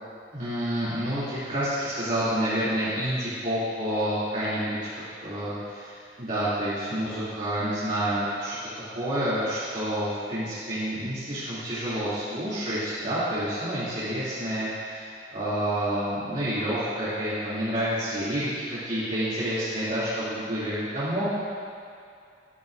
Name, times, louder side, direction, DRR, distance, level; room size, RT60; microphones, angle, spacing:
voice 1, 0.3-4.9 5.2-21.3, right 1 dB, 45° right, -14 dB, 2.8 m, -29 dB
14.0 x 10.5 x 2.6 m, 2.4 s
head